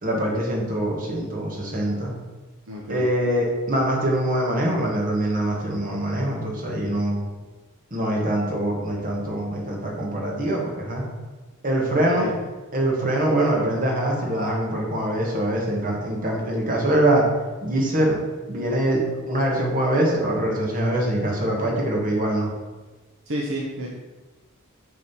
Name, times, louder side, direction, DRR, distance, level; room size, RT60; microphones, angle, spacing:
voice 1, 0.0-2.1 2.9-7.2 7.9-11.1 11.6-12.3 12.7-17.2 17.6-18.2 18.5-22.5, right 1 dB, 40° right, -2 dB, 1.8 m, -23 dB
voice 2, 2.7-3.1 11.9-12.3 23.3-23.9, equal, 65° right, -2 dB, 1.0 m, -30 dB
7.2 x 3.9 x 6.2 m, 1.2 s
head